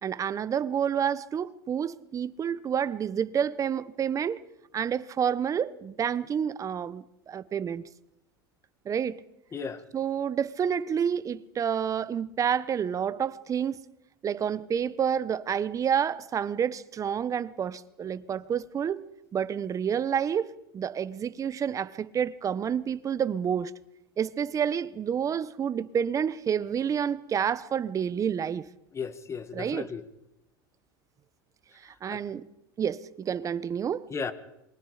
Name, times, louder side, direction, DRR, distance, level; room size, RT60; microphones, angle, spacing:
voice 1, 0.0-4.4 4.7-7.8 8.8-9.2 9.9-13.8 14.2-23.7 24.2-28.7 29.5-29.9 31.8-32.5 32.8-34.1, right 8 dB, 25° right, 1.1 m, -29 dB
voice 2, 9.5-9.8 28.9-30.0 32.1-32.2 34.1-34.3, left 5 dB, 20° left, 1.9 m, -35 dB
28.0 x 23.0 x 5.1 m
supercardioid pair, 115°, 12 cm